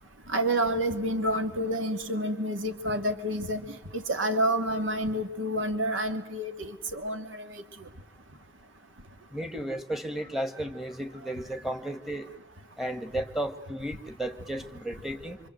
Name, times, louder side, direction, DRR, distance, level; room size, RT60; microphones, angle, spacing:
voice 1, 0.3-3.6 3.9-7.6, right 1 dB, 80° right, 7 dB, 2.5 m, -29 dB
voice 2, 9.3-12.3 12.8-15.4, right 1 dB, ahead, 7 dB, 1.8 m, -34 dB
26.5 x 25.5 x 7.9 m, 0.94 s
head